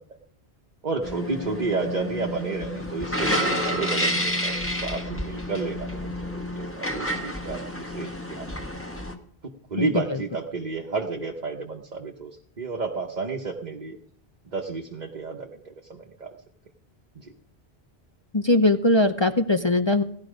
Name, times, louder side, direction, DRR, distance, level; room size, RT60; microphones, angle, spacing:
voice 1, 0.8-8.8 9.4-14.0 14.4-16.4 17.1-17.3, right 3 dB, 45° right, 0 dB, 1.2 m, -31 dB
sound 1, 1.0-9.1, equal, 10° left, 1.5 m, -29 dB
voice 2, 9.8-10.2 18.3-20.0, left 2 dB, 30° left, 6 dB, 0.6 m, -21 dB
17.0 x 12.5 x 5.1 m, 0.66 s
omnidirectional pair, 1.1 m